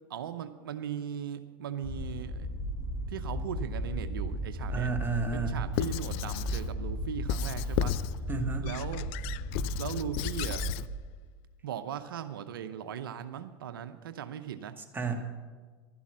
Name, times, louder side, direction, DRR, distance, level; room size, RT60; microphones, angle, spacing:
voice 1, 0.1-2.5 3.1-4.9 5.3-8.0 8.6-9.1 9.8-10.7 11.6-14.8, right 9 dB, 85° right, 9 dB, 0.7 m, -38 dB
sound 1, 1.8-10.9, equal, 30° left, 4.2 m, -35 dB
voice 2, 4.7-5.6 8.3-8.7 14.9-15.2, right 4 dB, 15° right, 3 dB, 1.9 m, -31 dB
Squeak / Writing, 5.7-6.7 7.3-8.2 8.7-10.9, left 14 dB, 55° left, 0.4 m, -34 dB
12.0 x 11.0 x 7.4 m, 1.5 s
hypercardioid pair, 95°, 11 cm